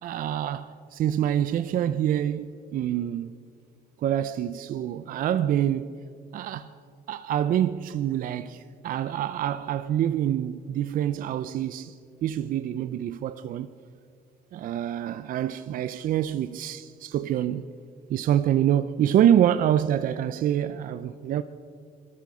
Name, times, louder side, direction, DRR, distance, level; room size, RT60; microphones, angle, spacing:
voice 1, 0.0-3.3 4.0-6.0 6.3-6.7 7.1-11.9 12.2-13.7 14.5-17.7 18.1-21.4, right 10 dB, 55° right, 0.5 m, -26 dB
22.5 x 13.0 x 4.9 m
cardioid pair, 110°, 17 cm